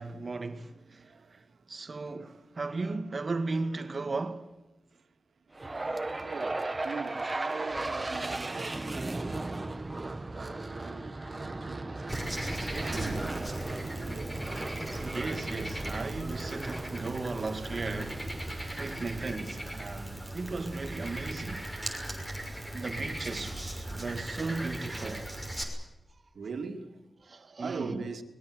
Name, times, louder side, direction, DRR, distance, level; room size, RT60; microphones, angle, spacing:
voice 1, 0.0-1.4 1.7-4.5 12.9-13.3 15.0-21.7 22.7-25.3 27.3-28.0, right 3 dB, 45° right, 2.1 m, -36 dB
voice 2, 1.0-1.6 1.9-2.4 4.9-5.1 6.2-12.3 12.7-13.4 13.9-14.4 20.1-20.4 23.9-24.0 24.4-24.5 26.3-28.2, right 5 dB, 80° right, 2.7 m, -43 dB
sound 1, 5.5-19.7, right 2 dB, 25° right, 1.6 m, -37 dB
Frog, 12.1-25.6, right 1 dB, ahead, 6.1 m, -38 dB
24.0 x 21.0 x 8.0 m
wide cardioid pair, 120°, 0 cm